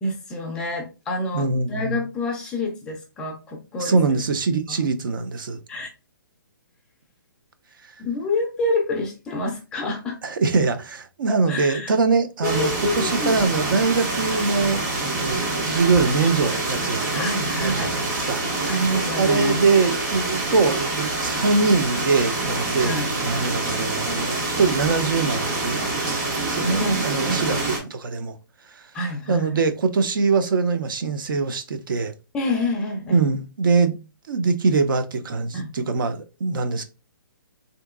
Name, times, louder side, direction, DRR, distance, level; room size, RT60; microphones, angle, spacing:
voice 1, 0.0-4.2 4.7-4.8 5.7-5.9 8.0-10.2 11.3-11.9 12.4-13.4 16.2-16.3 17.1-17.9 18.7-19.6 22.8-23.1 26.8-27.6 28.9-29.6 32.3-33.2 35.5-35.7, left 1 dB, 5° left, 0.3 m, -27 dB
voice 2, 1.3-2.0 3.8-5.6 7.8-7.9 10.2-17.2 17.6-18.7 19.2-28.4 28.6-28.9 29.3-32.1 33.1-34.0 34.3-36.8, right 4 dB, 70° right, 0.6 m, -23 dB
sound 1, 12.4-27.8, right 2 dB, 45° right, 1.6 m, -26 dB
3.5 x 2.8 x 2.4 m
hypercardioid pair, 165°, 12 cm